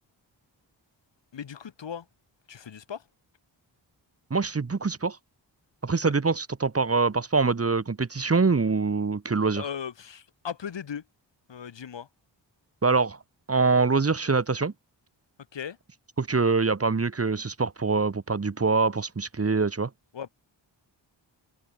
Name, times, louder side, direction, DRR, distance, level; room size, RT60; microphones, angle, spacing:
voice 1, 1.3-2.1 2.5-3.0 9.6-11.0 11.5-12.1 15.5-15.8 20.1-20.3, left 7 dB, 70° left, 2.0 m, -37 dB
voice 2, 4.3-5.2 5.8-9.6 12.8-13.2 13.5-14.7 16.2-19.9, right 4 dB, 30° right, 1.3 m, -24 dB
cardioid pair, 65°, 45 cm